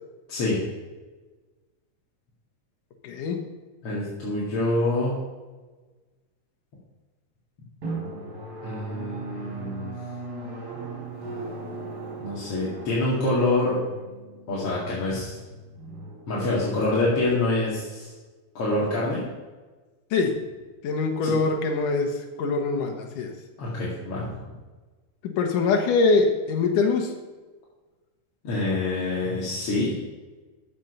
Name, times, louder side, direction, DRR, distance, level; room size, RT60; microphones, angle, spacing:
voice 1, 0.3-0.6 3.8-5.2 8.6-9.9 12.2-13.8 14.5-15.4 16.3-18.1 18.5-19.2 21.2-21.3 23.6-24.3 28.4-30.0, left 2 dB, 50° left, -7 dB, 2.8 m, -26 dB
voice 2, 3.0-3.4 20.1-20.4 20.8-22.1 22.4-23.3 25.2-27.1, left 4 dB, 85° left, 3 dB, 2.8 m, -23 dB
Drum, 7.8-17.1, right 3 dB, 30° right, 3.3 m, -38 dB
14.0 x 6.4 x 5.5 m, 1.3 s
omnidirectional pair, 3.6 m